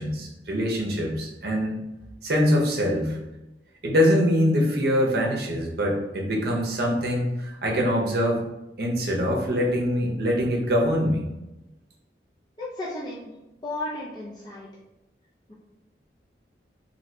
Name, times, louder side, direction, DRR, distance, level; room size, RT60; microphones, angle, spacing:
voice 1, 0.0-1.8 2.2-3.2 3.8-8.4 8.8-11.3, equal, 60° right, -1 dB, 0.7 m, -24 dB
voice 2, 12.6-13.3 13.6-14.7, left 2 dB, 25° left, -7 dB, 0.5 m, -34 dB
2.7 x 2.7 x 3.2 m, 0.96 s
head